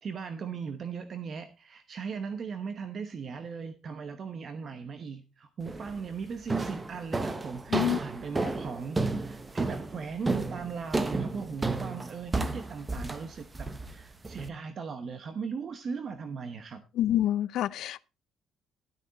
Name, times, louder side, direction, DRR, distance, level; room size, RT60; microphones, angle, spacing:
voice 1, 0.0-16.8, right 5 dB, 45° right, 1.0 m, -38 dB
sound 1, 5.7-6.0 6.5-14.5, right 3 dB, 20° right, 1.0 m, -32 dB
voice 2, 17.0-18.0, left 12 dB, 70° left, 0.5 m, -27 dB
12.0 x 8.6 x 4.0 m
cardioid pair, 125°, 0 cm